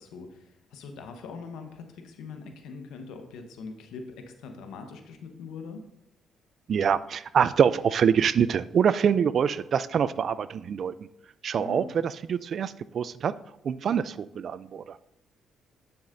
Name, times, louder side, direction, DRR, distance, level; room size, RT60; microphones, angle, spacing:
voice 1, 0.0-5.8 11.6-11.9, left 4 dB, 85° left, 5 dB, 1.0 m, -42 dB
voice 2, 6.7-10.9 11.4-13.3 13.6-15.0, right 7 dB, 55° right, 17 dB, 0.3 m, -25 dB
9.4 x 7.0 x 2.6 m, 0.86 s
cardioid pair, 90°, 0 cm